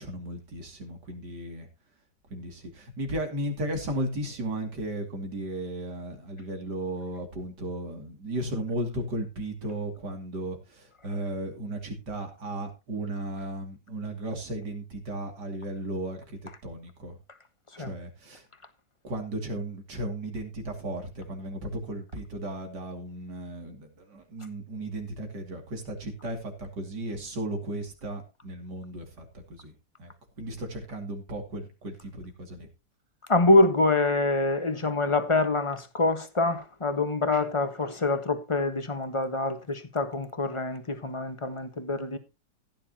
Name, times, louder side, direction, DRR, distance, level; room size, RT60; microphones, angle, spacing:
voice 1, 0.0-1.7 2.3-17.2 17.8-18.4 19.0-29.7 30.0-32.7, right 1 dB, 85° right, 3.3 m, -35 dB
voice 2, 33.3-42.2, left 2 dB, 20° left, 1.3 m, -25 dB
15.5 x 9.8 x 2.9 m
omnidirectional pair, 1.8 m